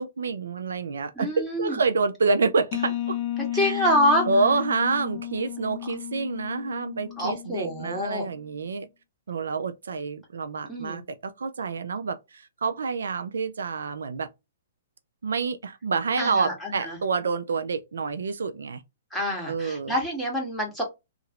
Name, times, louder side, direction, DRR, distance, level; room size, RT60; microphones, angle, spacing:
voice 1, 0.0-3.2 3.5-3.9 4.3-8.9 9.3-14.3 15.2-18.8 19.5-19.9, right 4 dB, 85° right, 0.5 m, -28 dB
voice 2, 1.1-1.8 3.4-4.2 7.2-8.2 10.7-11.0 16.2-17.0 19.1-20.8, equal, ahead, 1.6 m, -26 dB
sound 1, 2.7-8.3, left 13 dB, 40° left, 0.5 m, -33 dB
2.9 x 2.6 x 2.9 m
hypercardioid pair, 140°, 0 cm